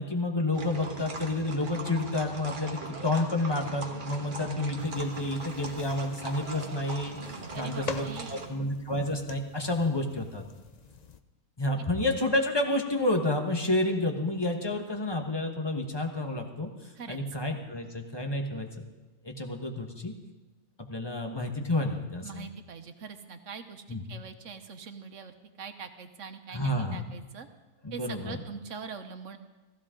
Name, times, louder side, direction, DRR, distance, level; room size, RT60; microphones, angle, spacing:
voice 1, 0.0-7.2 7.5-10.4 11.6-16.7 17.1-18.7 19.2-20.1 20.8-22.5 23.9-24.0 26.5-27.1 27.8-28.4, left 2 dB, 20° left, 3 dB, 1.2 m, -30 dB
sound 1, 0.5-8.5, right 3 dB, 35° right, 1.3 m, -41 dB
sound 2, 4.8-11.2, left 5 dB, 50° left, 0.4 m, -45 dB
voice 2, 7.5-8.6 17.0-17.2 22.2-27.5 27.9-29.4, right 6 dB, 60° right, 8 dB, 1.2 m, -43 dB
15.5 x 15.5 x 3.8 m, 1.2 s
omnidirectional pair, 1.5 m